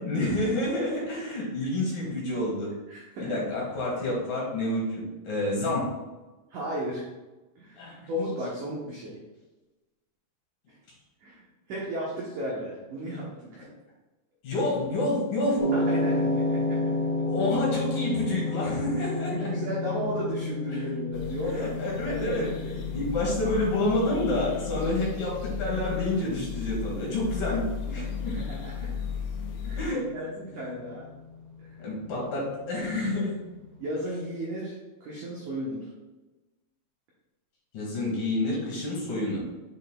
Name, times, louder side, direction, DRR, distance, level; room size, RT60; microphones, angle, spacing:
voice 1, 0.0-2.7 3.2-5.9 7.8-8.1 14.4-15.6 17.2-19.5 20.7-20.8 21.6-22.5 22.9-28.4 29.6-30.1 31.8-33.3 37.7-39.4, left 1 dB, 55° left, -5 dB, 3.1 m, -28 dB
voice 2, 2.9-3.4 6.5-7.1 7.6-7.8 8.1-9.2 11.2-13.7 15.7-16.9 19.0-19.1 19.3-21.7 22.1-22.9 28.4-28.9 29.6-29.8 30.1-31.1 31.6-31.8 33.8-35.9, equal, 80° right, -4 dB, 1.7 m, -34 dB
sound 1, 15.6-33.8, left 2 dB, 50° right, 2.1 m, -32 dB
sound 2, 21.1-29.9, left 7 dB, 85° left, 3.3 m, -36 dB
8.4 x 5.3 x 2.2 m, 1.1 s
omnidirectional pair, 5.1 m